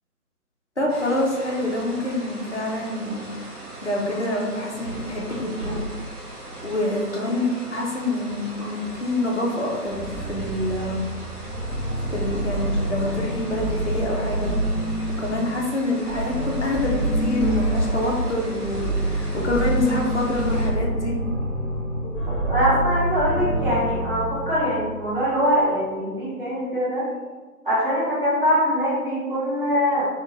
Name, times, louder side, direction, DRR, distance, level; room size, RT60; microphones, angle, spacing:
voice 1, 0.8-3.3 3.8-5.8 6.6-11.0 12.1-14.5 15.2-21.2, left 1 dB, 50° left, -2 dB, 0.6 m, -26 dB
sound 1, 0.9-20.7, right 1 dB, 65° right, 1.1 m, -39 dB
sound 2, 9.9-25.5, right 1 dB, ahead, 0.4 m, -27 dB
voice 2, 22.0-27.1 27.6-30.0, equal, 35° right, -11 dB, 1.1 m, -23 dB
2.7 x 2.4 x 2.9 m, 1.3 s
figure-of-eight pair, 165°, 47 cm